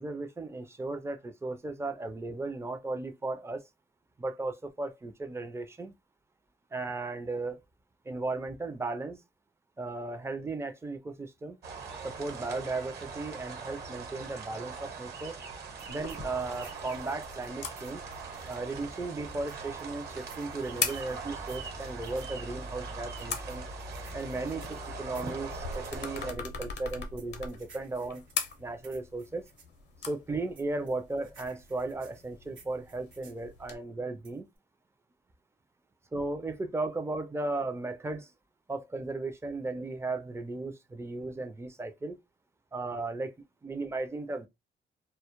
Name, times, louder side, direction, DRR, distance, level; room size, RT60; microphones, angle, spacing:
voice 1, 0.0-3.6 4.2-5.9 6.7-7.6 8.1-9.2 9.8-11.6 12.0-15.4 15.9-18.0 18.5-23.6 24.1-28.3 28.6-29.4 30.1-34.5 36.1-38.3 38.7-42.2 42.7-43.3 43.6-44.5, right 2 dB, 15° right, 0.4 m, -36 dB
sound 1, 11.6-26.3, right 4 dB, 55° right, 1.0 m, -41 dB
sound 2, 15.8-18.7 19.5-22.3 23.2-26.0 26.9-29.7 30.5-33.4 34.2-34.6, right 5 dB, 75° right, 0.9 m, -57 dB
sound 3, 15.9-33.7, left 6 dB, 60° left, 0.6 m, -42 dB
2.1 x 2.0 x 2.9 m
cardioid pair, 90°, 20 cm